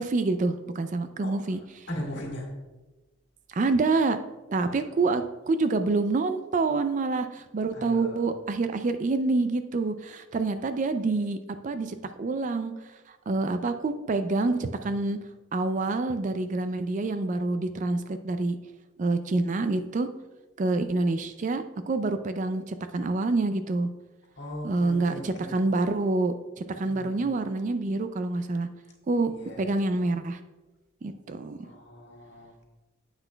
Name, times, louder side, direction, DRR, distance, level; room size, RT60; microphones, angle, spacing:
voice 1, 0.0-1.9 3.5-4.2 4.5-11.4 11.6-12.7 13.1-15.2 15.5-18.6 19.0-20.1 20.6-23.9 24.6-26.3 26.8-28.7 29.1-29.3 29.6-30.4 31.0-31.6, right 3 dB, 40° right, 9 dB, 0.3 m, -27 dB
voice 2, 1.9-2.5 4.6-4.8 7.7-8.2 24.4-25.5 26.8-27.3 29.3-29.6 31.6-32.6, left 1 dB, 60° left, -1 dB, 1.8 m, -39 dB
9.7 x 8.1 x 2.2 m, 1.2 s
head